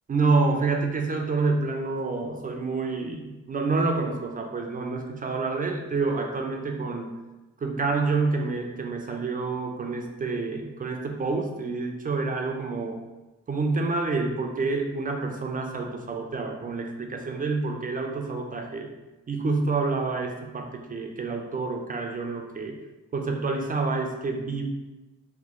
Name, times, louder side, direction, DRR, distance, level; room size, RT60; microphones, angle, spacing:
voice 1, 0.1-7.1 7.6-13.0 13.5-18.9 19.3-22.8 23.1-24.6, right 3 dB, 30° right, 2 dB, 0.4 m, -28 dB
2.9 x 2.4 x 3.6 m, 1.1 s
cardioid pair, 90°, 30 cm